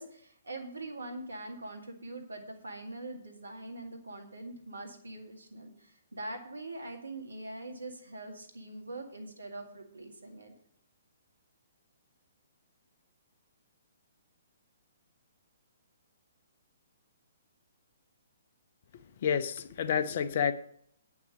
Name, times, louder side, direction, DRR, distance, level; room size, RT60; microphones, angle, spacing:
voice 1, 0.0-10.5, right 2 dB, 80° right, 2.1 m, -43 dB
voice 2, 19.2-20.5, left 7 dB, 50° left, 0.8 m, -29 dB
9.2 x 6.0 x 7.6 m
figure-of-eight pair, 125°, 0 cm